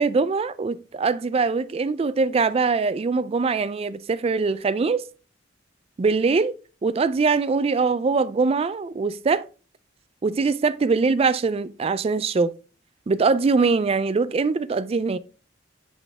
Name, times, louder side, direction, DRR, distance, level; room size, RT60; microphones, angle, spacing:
voice 1, 0.0-5.0 6.0-6.5 6.8-9.5 10.2-12.5 13.1-15.2, right 4 dB, 30° right, 0.3 m, -22 dB
8.1 x 3.7 x 3.4 m
head